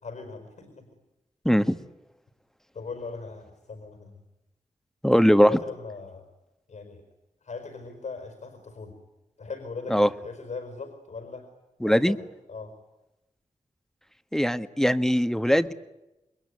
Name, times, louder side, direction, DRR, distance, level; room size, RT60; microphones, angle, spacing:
voice 1, 0.0-0.9 2.7-4.2 5.2-6.3 6.7-7.0 7.4-9.0 9.4-11.5 11.8-12.7, left 4 dB, 75° left, 6 dB, 4.8 m, -39 dB
voice 2, 1.4-1.7 5.0-5.5 9.9-10.1 11.8-12.2 14.3-15.7, equal, 5° left, 10 dB, 1.5 m, -20 dB
28.0 x 21.5 x 9.7 m, 0.97 s
cardioid pair, 55°, 13 cm